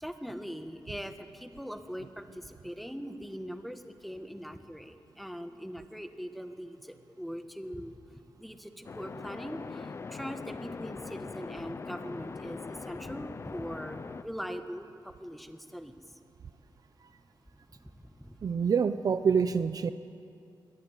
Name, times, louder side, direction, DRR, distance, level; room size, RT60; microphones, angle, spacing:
voice 1, 0.0-8.0 8.4-12.6 12.9-15.9 18.2-18.3 18.6-18.7, equal, ahead, 7 dB, 1.3 m, -41 dB
sound 1, 8.8-14.2, left 4 dB, 35° left, 0.6 m, -41 dB
voice 2, 18.4-19.9, right 6 dB, 50° right, 12 dB, 0.7 m, -26 dB
22.5 x 21.0 x 9.2 m, 2.5 s
wide cardioid pair, 165°, 8 cm